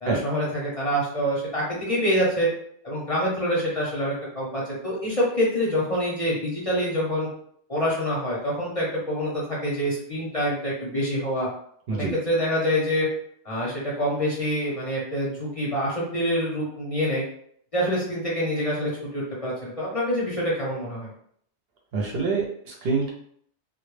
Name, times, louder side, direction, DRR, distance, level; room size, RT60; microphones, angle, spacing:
voice 1, 0.0-2.5 2.8-7.3 7.7-11.5 11.9-13.1 13.4-17.2 17.7-21.1, equal, 40° left, -6 dB, 0.6 m, -26 dB
voice 2, 21.9-23.1, right 4 dB, 65° right, -1 dB, 0.7 m, -26 dB
2.1 x 2.0 x 3.0 m, 0.65 s
omnidirectional pair, 1.2 m